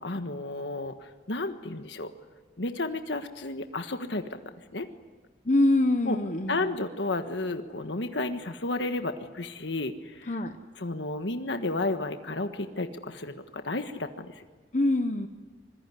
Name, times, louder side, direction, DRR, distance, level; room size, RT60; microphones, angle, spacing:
voice 1, 0.0-0.9 1.3-2.1 2.6-4.4 4.7-4.9 6.1-6.2 6.5-9.9 10.2-10.3 10.8-14.3, left 2 dB, 90° left, 7 dB, 1.5 m, -32 dB
voice 2, 5.4-6.7 10.3-10.6 14.7-15.3, left 1 dB, 40° left, 7 dB, 1.0 m, -24 dB
25.5 x 21.5 x 9.8 m, 1.3 s
head